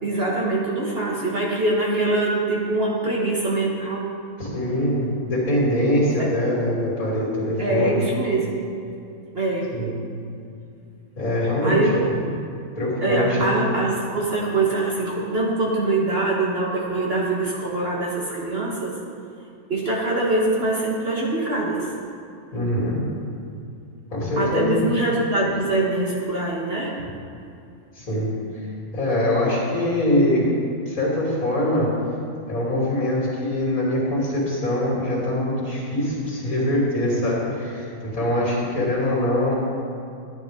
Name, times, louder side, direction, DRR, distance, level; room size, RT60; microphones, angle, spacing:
voice 1, 0.0-4.1 6.2-6.3 7.6-8.6 9.3-9.7 11.6-12.0 13.0-19.0 19.7-21.9 24.4-27.1, right 2 dB, 45° right, -4 dB, 1.5 m, -23 dB
voice 2, 4.4-8.0 9.7-10.0 11.2-11.8 12.8-13.5 22.5-23.0 24.1-24.8 28.0-28.3 28.9-30.4 30.9-31.9 32.5-39.6, left 1 dB, 80° left, -6 dB, 3.1 m, -23 dB
11.5 x 10.0 x 3.7 m, 2.5 s
omnidirectional pair, 1.5 m